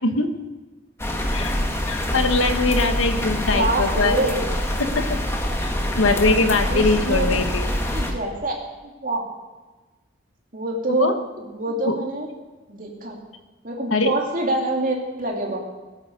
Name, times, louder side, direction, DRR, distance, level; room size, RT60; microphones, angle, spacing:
sound 1, 1.0-8.1, left 1 dB, 15° left, 1.5 m, -25 dB
voice 1, 1.9-4.2 4.8-5.2 5.6-7.7 10.9-11.1 11.8-12.0 13.9-14.1, left 3 dB, 90° left, 7 dB, 1.4 m, -22 dB
voice 2, 3.5-4.4 6.6-7.3 7.8-8.6 8.8-9.2 10.5-12.3 12.7-13.2 13.6-15.6, right 2 dB, 40° right, -1 dB, 2.9 m, -26 dB
18.0 x 9.9 x 6.6 m, 1.2 s
head